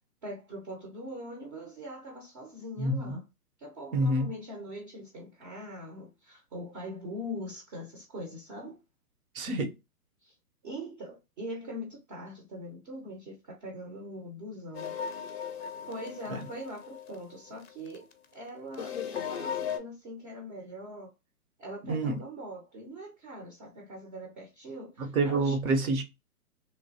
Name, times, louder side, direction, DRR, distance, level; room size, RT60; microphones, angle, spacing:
voice 1, 0.2-3.2 3.6-8.8 10.2-10.3 10.6-15.0 15.9-18.1 18.3-18.9 19.3-21.1 21.6-25.6, equal, 30° right, 0.7 m, -42 dB
voice 2, 2.8-3.2 3.9-4.3 9.3-9.7 21.9-22.2 25.0-26.0, right 2 dB, 65° right, 1.0 m, -27 dB
sound 1, 14.7-18.1 18.7-19.8, left 7 dB, 45° left, 0.5 m, -37 dB
3.0 x 2.1 x 2.7 m
hypercardioid pair, 140°, 46 cm